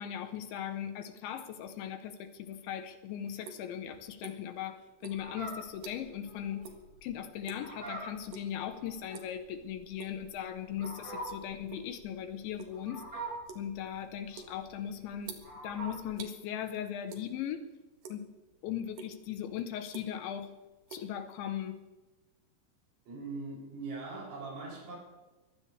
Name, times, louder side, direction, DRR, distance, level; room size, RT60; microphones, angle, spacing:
voice 1, 0.0-6.7 7.0-13.1 13.6-15.4 15.6-17.6 18.1-18.3 18.6-20.5 20.9-21.8, left 10 dB, 75° left, 8 dB, 3.2 m, -38 dB
sound 1, 2.8-4.6 5.0-6.3 6.6-6.9 7.2-7.7 8.3-8.6 9.0-9.4 9.8-10.3 10.8-11.9 12.2-16.4 17.1-17.6 17.9-18.5 18.9-19.1 19.7-20.4 20.6-21.8, right 6 dB, 60° right, 2.7 m, -48 dB
Fowl, 5.1-16.1, right 2 dB, 25° right, 8.1 m, -45 dB
voice 2, 23.1-25.0, right 3 dB, 80° right, -4 dB, 9.9 m, -41 dB
23.0 x 16.5 x 3.4 m, 1.1 s
omnidirectional pair, 5.7 m